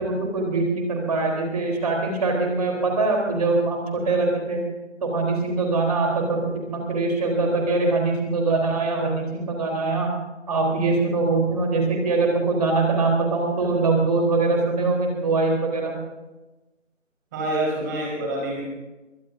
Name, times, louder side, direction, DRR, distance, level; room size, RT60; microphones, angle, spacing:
voice 1, 0.0-4.6 5.0-10.1 10.5-15.9, right 3 dB, 30° right, 0 dB, 4.0 m, -23 dB
voice 2, 17.3-18.6, right 1 dB, 15° right, -3 dB, 4.6 m, -26 dB
23.5 x 19.0 x 2.8 m, 1.1 s
figure-of-eight pair, 165°, 38 cm